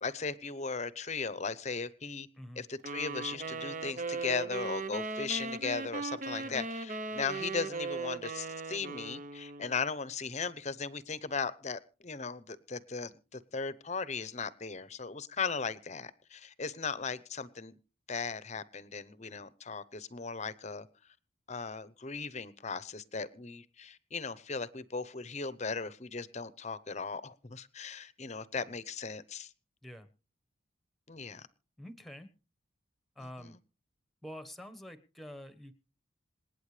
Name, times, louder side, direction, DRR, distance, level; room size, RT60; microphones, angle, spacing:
voice 1, 0.0-2.3 2.6-17.8 18.1-20.9 21.5-29.5 31.1-31.5, left 5 dB, 35° left, 16 dB, 0.8 m, -37 dB
sound 1, 2.8-9.8, right 3 dB, 40° right, 0.8 m, -38 dB
voice 2, 31.8-32.3 33.1-33.6 34.2-35.7, equal, ahead, 11 dB, 1.2 m, -47 dB
27.0 x 9.2 x 3.3 m, 0.35 s
head